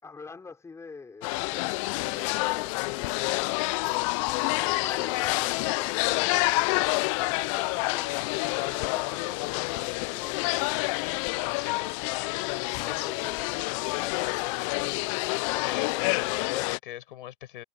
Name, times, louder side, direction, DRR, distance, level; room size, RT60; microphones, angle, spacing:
voice 1, 0.0-3.2 4.2-8.2 8.5-11.0 12.8-13.5, left 4 dB, 10° left, 5.9 m, -46 dB
sound 1, 1.2-16.8, left 27 dB, 35° left, 0.6 m, -28 dB
voice 2, 11.5-11.9 12.7-13.1 14.0-15.0 15.3-17.6, left 12 dB, 60° left, 7.2 m, -41 dB
hypercardioid pair, 130°, 29 cm